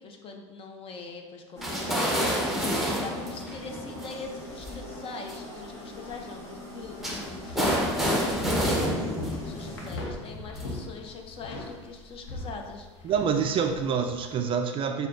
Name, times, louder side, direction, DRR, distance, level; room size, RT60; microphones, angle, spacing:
voice 1, 0.0-8.9 9.4-13.1, left 4 dB, 35° left, 3 dB, 0.7 m, -42 dB
sound 1, 1.6-9.9, left 1 dB, 20° left, 1.5 m, -42 dB
sound 2, 1.6-4.7 5.3-5.4 7.0-10.9, equal, ahead, 0.8 m, -29 dB
sound 3, 5.5-14.4, left 2 dB, 75° left, 1.0 m, -42 dB
voice 2, 13.0-15.1, right 6 dB, 35° right, 6 dB, 0.3 m, -26 dB
6.3 x 2.3 x 2.6 m, 1.4 s
hypercardioid pair, 85°, 16 cm